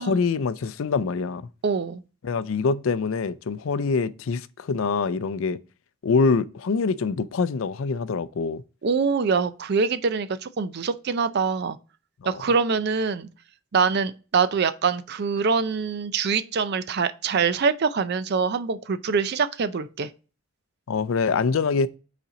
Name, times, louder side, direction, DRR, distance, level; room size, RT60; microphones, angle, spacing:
voice 1, 0.0-1.5 2.2-5.6 6.0-8.6 12.2-12.4 20.9-21.9, left 4 dB, 75° left, 0.4 m, -25 dB
voice 2, 1.6-2.0 8.8-11.8 12.3-13.3 13.7-20.1, right 5 dB, 55° right, 0.5 m, -24 dB
5.5 x 4.2 x 5.0 m
head